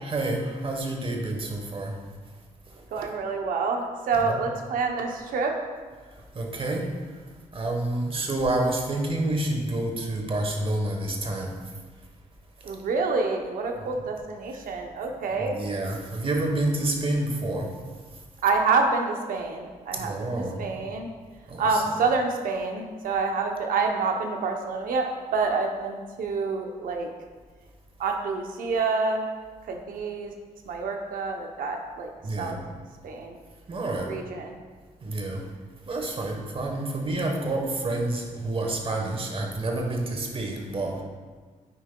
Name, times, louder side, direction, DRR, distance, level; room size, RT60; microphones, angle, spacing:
voice 1, 0.0-1.9 3.0-3.1 4.2-4.4 6.3-6.9 7.5-11.5 15.3-17.7 19.9-20.8 21.5-21.9 32.2-32.6 33.7-34.1 35.0-35.4 35.9-41.0, right 2 dB, 40° right, 1 dB, 1.1 m, -28 dB
voice 2, 2.9-5.6 10.0-10.3 12.6-15.6 18.4-21.1 21.6-27.1 28.0-29.3 29.7-30.3 30.7-32.1 32.4-32.5 33.0-33.4 34.0-34.6, right 4 dB, 80° right, 3 dB, 0.7 m, -27 dB
9.3 x 4.6 x 2.2 m, 1.5 s
cardioid pair, 75°, 14 cm